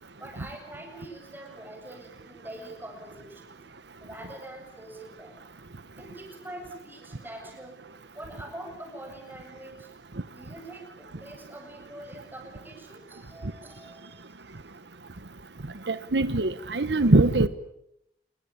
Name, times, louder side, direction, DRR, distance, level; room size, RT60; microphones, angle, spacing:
voice 1, 0.2-3.6 4.0-5.3 6.0-9.9 10.3-14.4, right 1 dB, 10° right, 2 dB, 7.8 m, -44 dB
voice 2, 15.9-17.5, right 2 dB, 80° right, 14 dB, 1.1 m, -22 dB
28.0 x 23.0 x 8.7 m, 0.80 s
head